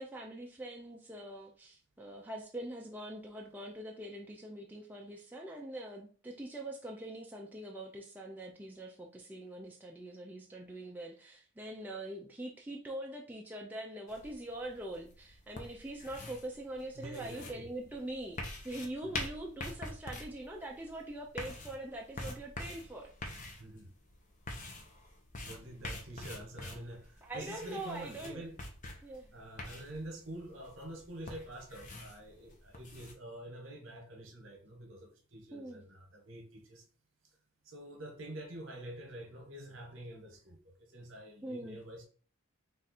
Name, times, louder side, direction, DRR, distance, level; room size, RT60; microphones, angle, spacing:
voice 1, 0.0-23.1 27.2-28.4 29.0-29.3 35.5-35.8 41.4-41.8, right 1 dB, 10° right, 0.4 m, -43 dB
sound 1, 14.1-33.1, left 2 dB, 35° left, 0.7 m, -46 dB
voice 2, 17.0-17.7 19.0-19.1 23.6-23.9 25.4-28.6 29.3-36.8 37.6-42.1, right 1 dB, 65° right, 1.1 m, -47 dB
3.6 x 2.5 x 4.2 m
head